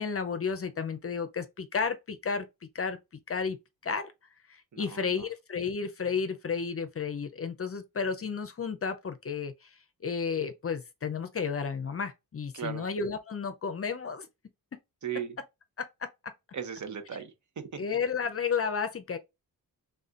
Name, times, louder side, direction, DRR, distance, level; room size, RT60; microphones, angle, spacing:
voice 1, 0.0-2.5 2.7-3.0 3.3-3.6 3.8-4.1 4.5-9.7 10.0-14.3 15.8-15.9 17.8-19.2, left 5 dB, 40° left, 0.5 m, -32 dB
voice 2, 4.7-5.3 12.5-12.9 15.0-15.4 16.5-17.8, right 8 dB, 50° right, 0.9 m, -37 dB
4.1 x 3.5 x 2.4 m
wide cardioid pair, 110°, 38 cm